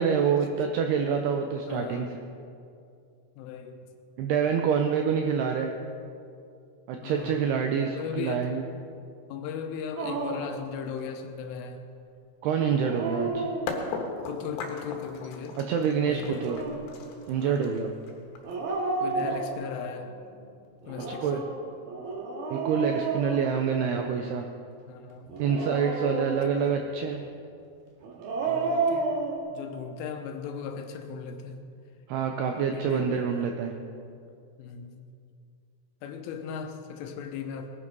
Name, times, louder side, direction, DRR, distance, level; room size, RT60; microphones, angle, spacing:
voice 1, 0.0-2.1 4.2-5.7 6.9-8.6 12.4-13.5 15.6-16.6 17.3-17.9 21.2-21.4 22.5-24.5 25.4-27.2 32.1-33.7, right 6 dB, 85° right, 4 dB, 2.3 m, -26 dB
voice 2, 1.7-2.1 3.4-3.8 7.0-7.4 7.7-8.5 9.3-11.8 14.3-15.6 16.0-16.8 17.4-17.8 19.0-20.1 20.9-21.5 24.9-25.4 26.4-26.6 28.5-29.1 29.5-31.6 32.7-33.3 34.6-35.0 36.0-37.7, left 6 dB, 85° left, 6 dB, 3.6 m, -37 dB
Dog, 10.0-10.6 12.7-14.1 16.2-16.9 18.4-19.9 20.8-24.0 25.3-26.7 28.0-29.4, right 3 dB, 60° right, 3.0 m, -31 dB
sound 1, 13.7-19.5, left 4 dB, 70° left, 3.2 m, -38 dB
20.0 x 10.0 x 5.3 m, 2.5 s
omnidirectional pair, 5.6 m